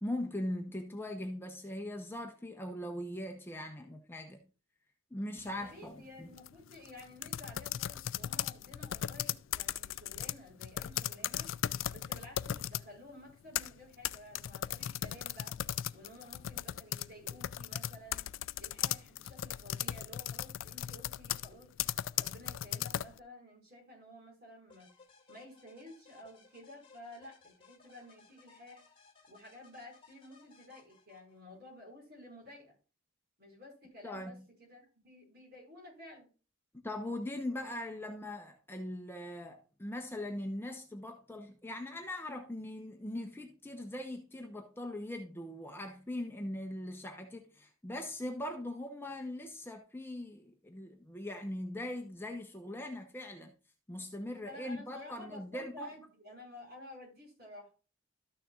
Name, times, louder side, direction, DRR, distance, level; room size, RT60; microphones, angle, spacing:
voice 1, 0.0-4.4 5.1-6.3 34.0-34.4 36.8-53.5 53.9-55.9, left 1 dB, 10° left, 0.8 m, -40 dB
sound 1, 5.4-5.7 6.3-12.9 13.3-23.2, left 11 dB, 65° left, 0.3 m, -37 dB
voice 2, 5.5-11.5 11.9-15.6 15.9-18.3 18.6-21.7 22.2-24.9 25.3-28.8 29.3-32.7 33.4-36.3 54.4-57.7, left 1 dB, 50° right, 5.2 m, -52 dB
sound 2, 24.7-31.6, left 4 dB, 25° left, 2.1 m, -62 dB
13.0 x 6.6 x 2.4 m
head